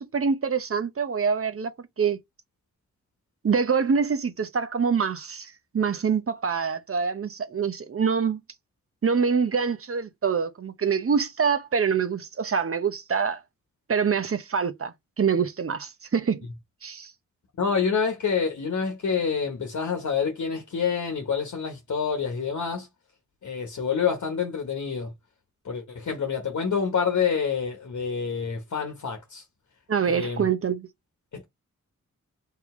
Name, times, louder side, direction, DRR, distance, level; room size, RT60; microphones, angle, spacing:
voice 1, 0.0-2.2 3.4-8.4 9.0-13.4 13.9-16.4 16.8-17.1 29.9-30.9, right 6 dB, 45° right, 0.8 m, -25 dB
voice 2, 17.6-22.9 23.4-25.1 25.6-29.4 30.1-30.5 31.3-31.4, left 6 dB, 60° left, 1.1 m, -27 dB
3.8 x 2.9 x 3.6 m
supercardioid pair, 40°, 32 cm